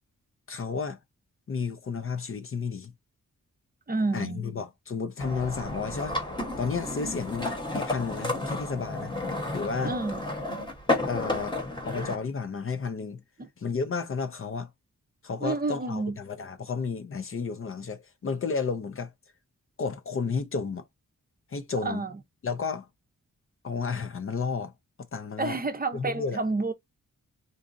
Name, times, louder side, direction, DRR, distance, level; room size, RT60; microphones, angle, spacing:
voice 1, 0.5-1.0 1.5-2.9 4.1-6.2 6.6-9.1 9.5-9.9 11.1-13.2 13.6-14.7 15.2-19.1 19.8-20.8 21.5-22.0 22.4-22.9 23.6-24.7 25.1-25.6 25.9-26.4, left 5 dB, 45° left, 0.5 m, -32 dB
voice 2, 3.9-4.4 9.8-10.2 13.4-13.5 15.4-16.2 21.8-22.2 25.4-26.7, right 3 dB, 30° right, 0.6 m, -29 dB
sound 1, 5.2-12.2, left 2 dB, 15° left, 1.0 m, -32 dB
3.9 x 2.4 x 2.5 m
wide cardioid pair, 160°, 32 cm